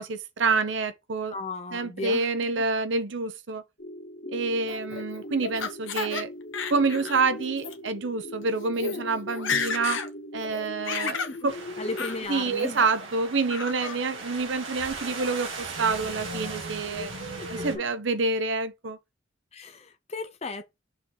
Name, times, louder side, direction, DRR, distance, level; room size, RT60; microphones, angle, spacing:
voice 1, 0.0-1.3 1.7-3.6 4.3-6.3 6.7-10.0 10.3-11.2 11.4-11.5 12.3-17.1 17.5-19.0, right 4 dB, 70° right, 0.8 m, -27 dB
voice 2, 1.3-2.3 11.0-11.5 11.8-12.8 17.4-17.7 19.5-20.7, left 3 dB, 35° left, 0.7 m, -36 dB
sound 1, 3.8-12.2, left 1 dB, 60° left, 1.6 m, -40 dB
Laughter, 4.7-6.2 6.5-7.2 7.6-7.7 8.4-8.5 8.7-9.0 9.3-10.1 10.4-11.4 12.0-12.2 12.6-13.1 13.5-14.0, left 6 dB, 80° left, 1.2 m, -32 dB
sound 2, 11.5-17.7, right 3 dB, 90° right, 2.3 m, -37 dB
6.6 x 3.7 x 4.7 m
head